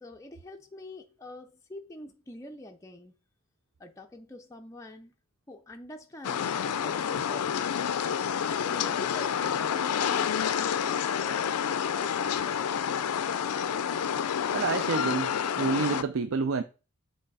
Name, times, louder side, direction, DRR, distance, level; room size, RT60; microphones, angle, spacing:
voice 1, 0.0-3.1 3.8-5.1 5.5-8.0 8.6-12.8, left 1 dB, 15° left, 0.4 m, -46 dB
sound 1, 6.2-16.0, left 8 dB, 90° left, 0.4 m, -29 dB
voice 2, 14.5-16.6, right 4 dB, 60° right, 0.4 m, -28 dB
7.6 x 3.3 x 4.1 m
head